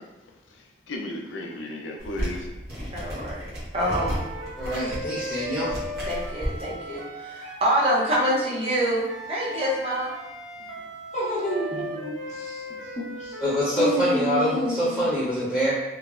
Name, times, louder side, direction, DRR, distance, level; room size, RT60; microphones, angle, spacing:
voice 1, 0.2-2.5, left 1 dB, 85° left, 0.4 m, -35 dB
sound 1, 2.0-6.6, equal, 65° right, 0.9 m, -33 dB
voice 2, 2.9-4.3 6.1-10.1, equal, 30° right, 0.5 m, -26 dB
sound 2, 3.8-8.1 9.0-13.7, equal, 85° right, 0.5 m, -37 dB
voice 3, 4.6-5.8 13.4-15.7, equal, ahead, 0.8 m, -25 dB
voice 4, 11.1-13.4 13.8-15.0, equal, 35° left, 0.7 m, -29 dB
3.0 x 2.0 x 2.3 m
head